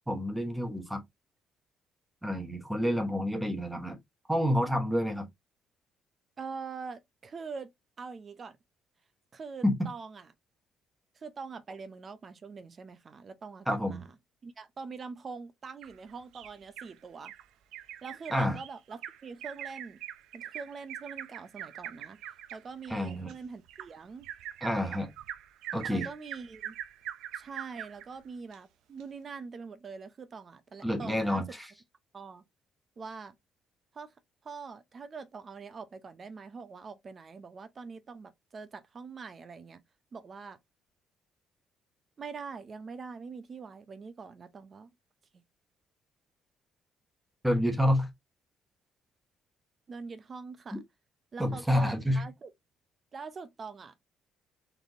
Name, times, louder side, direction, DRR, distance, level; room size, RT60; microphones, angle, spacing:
voice 1, 0.1-1.0 2.2-4.0 4.3-5.3 9.6-9.7 13.7-14.0 18.3-18.6 22.9-23.3 24.6-25.1 25.7-26.1 30.8-31.7 47.4-48.1 50.7-50.8 51.4-52.2, equal, 5° right, 0.9 m, -28 dB
voice 2, 6.4-7.7 8.0-8.6 9.3-10.3 11.1-14.1 14.4-17.3 18.0-20.0 20.3-24.3 25.9-26.8 27.3-31.5 32.1-32.4 33.0-33.4 33.9-34.1 34.4-39.8 40.1-40.6 42.2-44.9 49.9-50.8 51.3-52.5 53.1-53.9, right 5 dB, 30° right, 0.7 m, -44 dB
Bird vocalization bird call bird song, 15.8-16.9 17.3-17.4 17.7-28.1 28.5-28.6 29.0-29.1, right 11 dB, 80° right, 0.5 m, -43 dB
4.1 x 3.4 x 2.8 m
cardioid pair, 170°, 0 cm